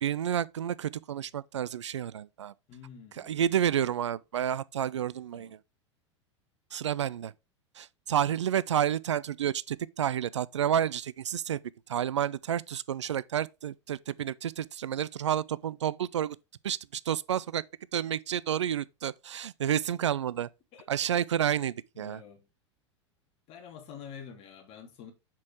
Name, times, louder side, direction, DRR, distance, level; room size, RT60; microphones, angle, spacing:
voice 1, 0.0-2.5 3.1-5.6 6.7-7.3 7.8-11.6 11.9-16.4 16.6-17.6 17.9-20.5 20.9-22.2, right 9 dB, 70° right, 0.4 m, -30 dB
voice 2, 2.7-3.4 5.1-5.5 20.7-21.0 21.9-22.5 23.5-25.1, left 7 dB, 40° left, 2.6 m, -48 dB
7.5 x 6.2 x 3.6 m
figure-of-eight pair, 85°, 15 cm